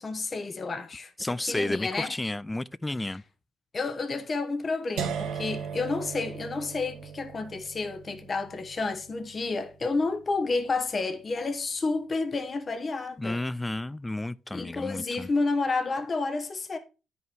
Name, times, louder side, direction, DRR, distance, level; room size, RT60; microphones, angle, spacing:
voice 1, 0.0-1.1 1.5-2.1 3.0-3.1 3.7-13.4 14.5-16.8, left 3 dB, 35° left, 1.2 m, -30 dB
voice 2, 1.2-3.2 13.2-15.3, left 2 dB, 15° left, 0.4 m, -32 dB
sound 1, 5.0-10.9, right 7 dB, 85° right, 1.1 m, -38 dB
9.4 x 5.6 x 4.5 m
cardioid pair, 90°, 0 cm